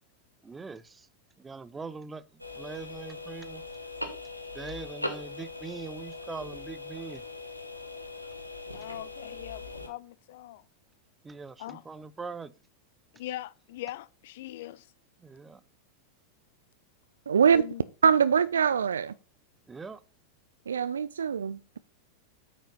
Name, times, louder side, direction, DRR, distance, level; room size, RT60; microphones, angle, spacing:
voice 1, 0.4-1.1 1.4-3.6 4.5-7.2 11.2-12.5 15.2-15.6 19.7-20.0, right 5 dB, 15° right, 0.7 m, -42 dB
sound 1, 2.4-9.9, left 2 dB, 90° left, 1.3 m, -40 dB
voice 2, 8.7-10.6 11.6-11.8 13.1-14.9 17.5-17.8, left 14 dB, 55° left, 0.4 m, -41 dB
voice 3, 17.3-17.6 18.0-19.1 20.7-21.8, right 7 dB, 70° right, 0.3 m, -23 dB
8.8 x 5.1 x 5.4 m
figure-of-eight pair, 90°, 0 cm